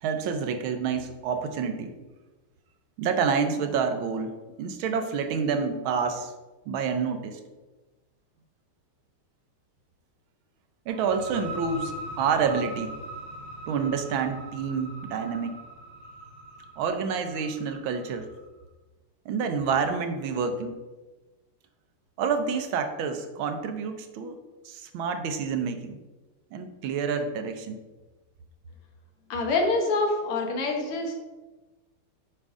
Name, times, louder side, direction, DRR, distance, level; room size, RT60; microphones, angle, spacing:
voice 1, 0.0-1.9 3.0-6.3 6.7-7.4 10.9-12.9 13.7-15.6 16.8-18.3 19.2-20.8 22.2-24.4 24.6-26.0 26.5-27.8, right 6 dB, 75° right, 7 dB, 1.4 m, -28 dB
sound 1, 10.9-18.4, right 1 dB, 40° right, 0.6 m, -41 dB
voice 2, 29.3-31.1, left 3 dB, 90° left, 2 dB, 2.0 m, -26 dB
7.5 x 5.2 x 3.6 m, 1.2 s
omnidirectional pair, 2.4 m